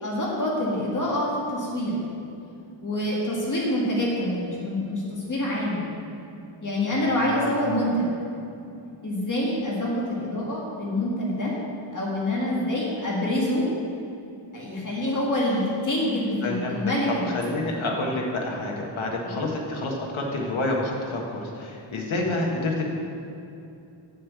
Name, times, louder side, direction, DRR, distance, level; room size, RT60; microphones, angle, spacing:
voice 1, 0.0-2.0 2.8-5.9 6.6-8.2 9.0-11.5 11.9-13.7 14.5-17.3 19.2-19.3, left 1 dB, 40° left, -5 dB, 2.0 m, -26 dB
voice 2, 6.9-7.6 16.4-16.8 17.3-22.9, left 2 dB, 80° left, -1 dB, 1.8 m, -28 dB
7.6 x 6.7 x 8.2 m, 2.7 s
wide cardioid pair, 175°, 47 cm